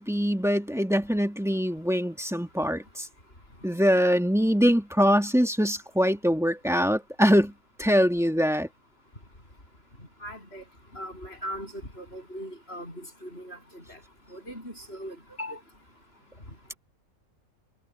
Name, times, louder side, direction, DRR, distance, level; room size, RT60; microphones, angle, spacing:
voice 1, 0.0-3.1 3.6-7.5 7.8-8.7, equal, ahead, 1.8 m, -23 dB
voice 2, 10.2-10.6 10.9-14.0 14.3-15.6, equal, 45° left, 8.4 m, -39 dB
omnidirectional pair, 1.4 m